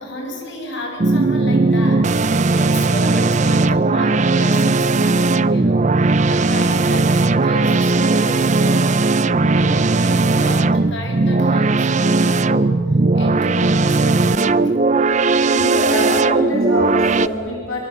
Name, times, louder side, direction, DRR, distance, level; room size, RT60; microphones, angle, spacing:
voice 1, 0.0-9.0 9.4-14.8, left 1 dB, 60° left, 2 dB, 5.9 m, -31 dB
sound 1, 1.0-17.3, right 3 dB, 35° right, 0.5 m, -17 dB
voice 2, 15.5-17.8, left 1 dB, 80° left, -1 dB, 3.9 m, -24 dB
25.0 x 24.0 x 7.2 m, 2.4 s
head